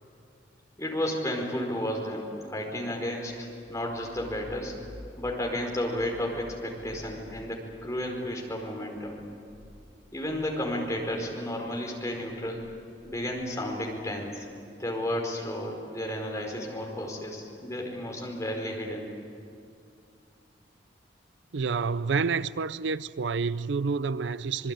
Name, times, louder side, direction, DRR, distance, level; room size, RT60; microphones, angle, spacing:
voice 1, 0.8-4.7 5.2-9.2 10.1-12.6 13.0-14.5 14.8-19.1, left 1 dB, 15° left, 4.9 m, -32 dB
sound 1, 3.2-11.5 11.8-14.4, equal, 10° right, 6.5 m, -52 dB
voice 2, 21.5-24.7, right 5 dB, 70° right, 0.5 m, -28 dB
27.0 x 21.0 x 9.2 m
head